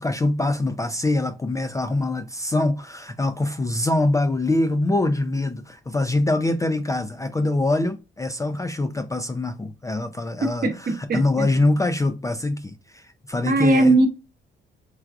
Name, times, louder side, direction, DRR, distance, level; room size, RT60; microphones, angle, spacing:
voice 1, 0.0-14.0, left 2 dB, 15° left, 0.3 m, -24 dB
voice 2, 11.1-11.4 13.4-14.1, right 2 dB, 50° right, 0.8 m, -18 dB
4.6 x 2.3 x 2.3 m
cardioid pair, 90°, 20 cm